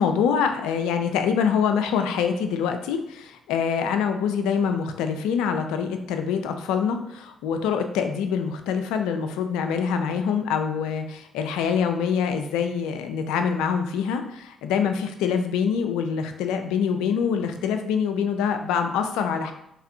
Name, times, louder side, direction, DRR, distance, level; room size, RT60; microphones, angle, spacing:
voice 1, 0.0-19.5, left 7 dB, 75° left, 7 dB, 0.3 m, -25 dB
4.0 x 3.0 x 2.6 m, 0.79 s
hypercardioid pair, 45°, 0 cm